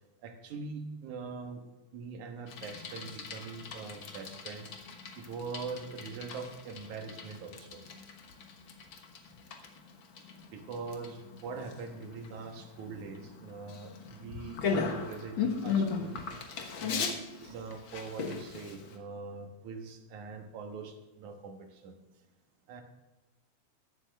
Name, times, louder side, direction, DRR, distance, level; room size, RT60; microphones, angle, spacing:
voice 1, 0.2-1.6 1.9-4.7 5.2-7.8 10.5-16.2 16.8-21.9 22.7-22.8, right 4 dB, 85° right, 5 dB, 2.8 m, -42 dB
Bicycle, 2.5-19.0, left 5 dB, 50° left, 1.7 m, -38 dB
16.5 x 12.0 x 3.5 m, 1.1 s
omnidirectional pair, 3.3 m